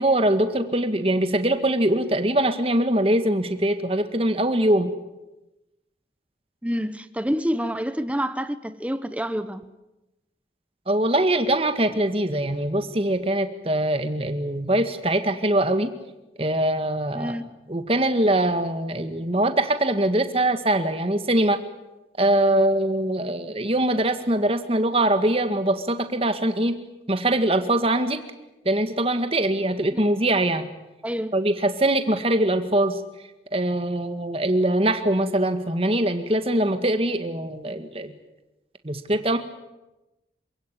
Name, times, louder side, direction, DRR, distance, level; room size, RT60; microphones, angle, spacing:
voice 1, 0.0-4.9 10.9-15.9 16.4-17.4 17.7-21.6 22.2-26.8 27.1-28.2 28.7-30.6 31.3-33.0 33.5-38.1 38.8-39.4, right 1 dB, 30° right, 8 dB, 1.9 m, -22 dB
voice 2, 6.6-9.6 17.1-17.5 31.0-31.4, equal, 5° right, 12 dB, 1.0 m, -27 dB
27.5 x 17.0 x 9.9 m, 1.0 s
head